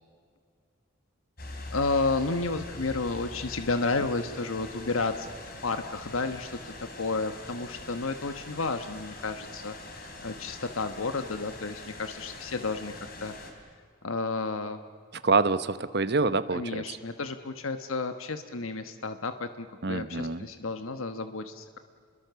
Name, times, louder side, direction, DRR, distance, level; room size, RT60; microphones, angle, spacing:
sound 1, 1.4-13.5, left 2 dB, 45° left, 3.6 m, -43 dB
voice 1, 1.7-5.3 5.6-13.3 14.0-14.8 16.5-21.8, left 3 dB, 85° left, 9 dB, 1.2 m, -32 dB
voice 2, 15.1-17.0 19.8-20.5, right 3 dB, 50° right, 14 dB, 0.9 m, -26 dB
29.5 x 22.0 x 6.9 m, 2.1 s
head